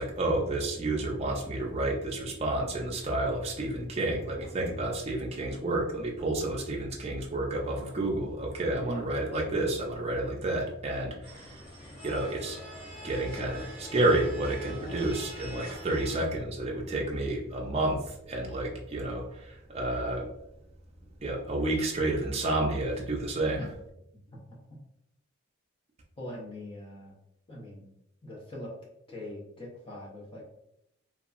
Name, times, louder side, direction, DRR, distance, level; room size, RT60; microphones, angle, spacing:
voice 1, 0.0-11.5 12.0-12.6 13.0-20.3 21.2-23.6, right 2 dB, 30° right, -1 dB, 0.4 m, -30 dB
voice 2, 8.7-9.1 26.2-27.2 27.5-27.9 28.2-28.7 29.1-30.4, equal, 25° left, -4 dB, 0.7 m, -41 dB
sound 1, 11.2-16.2, equal, 50° left, 1.2 m, -44 dB
2.7 x 2.3 x 2.4 m, 0.79 s
head